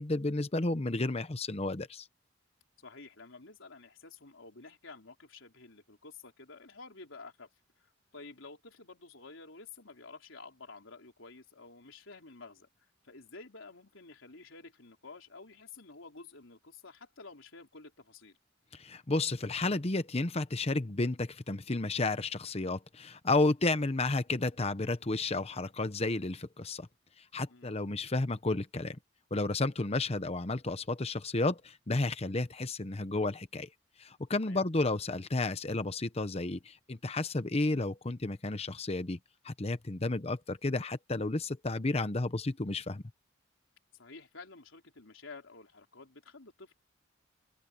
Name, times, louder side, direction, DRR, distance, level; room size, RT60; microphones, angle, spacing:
voice 1, 0.0-2.1 18.7-26.9 27.3-29.0 29.3-33.7 34.0-39.2 39.4-43.0, left 2 dB, 30° left, 0.9 m, -32 dB
voice 2, 2.8-7.5 7.8-18.4 27.5-27.7 34.4-34.6 43.9-46.7, left 3 dB, 85° left, 3.8 m, -51 dB
open air
head